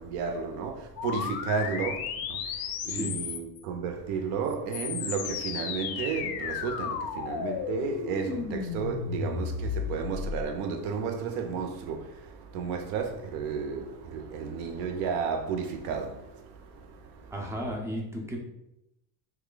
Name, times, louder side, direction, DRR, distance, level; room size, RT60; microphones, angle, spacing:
voice 1, 0.0-17.7, right 6 dB, 70° right, 0.7 m, -33 dB
sound 1, 1.0-3.6 4.5-10.4, left 7 dB, 60° left, 0.5 m, -34 dB
voice 2, 17.3-18.4, equal, 5° right, 0.3 m, -34 dB
3.1 x 2.3 x 3.7 m
cardioid pair, 135°, 42 cm